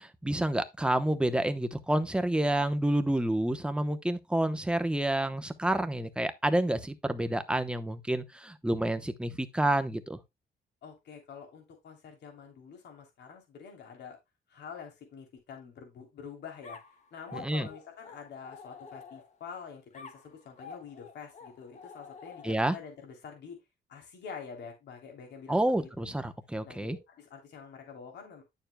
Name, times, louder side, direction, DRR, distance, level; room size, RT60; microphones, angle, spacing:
voice 1, 0.0-10.2 17.4-17.7 22.4-22.7 25.5-27.0, right 1 dB, 5° right, 0.9 m, -29 dB
voice 2, 10.8-14.2 14.5-16.8 17.1-23.6 23.9-26.1 26.6-28.4, left 6 dB, 75° left, 3.2 m, -47 dB
sound 1, 16.6-19.5 19.9-22.8, left 5 dB, 40° left, 1.7 m, -49 dB
10.5 x 7.0 x 2.2 m
cardioid pair, 155°, 18 cm